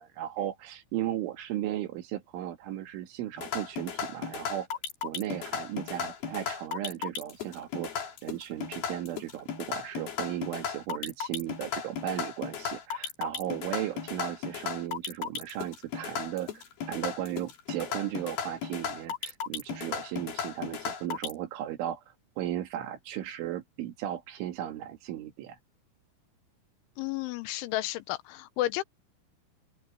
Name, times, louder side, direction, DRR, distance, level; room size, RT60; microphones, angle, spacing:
voice 1, 0.0-4.7 5.0-16.5 16.9-22.0 22.4-25.6, right 12 dB, 90° right, 4.5 m, -36 dB
sound 1, 3.4-21.3, left 7 dB, 55° left, 4.4 m, -35 dB
voice 2, 27.0-28.8, left 16 dB, 85° left, 3.4 m, -32 dB
open air
omnidirectional pair, 5.4 m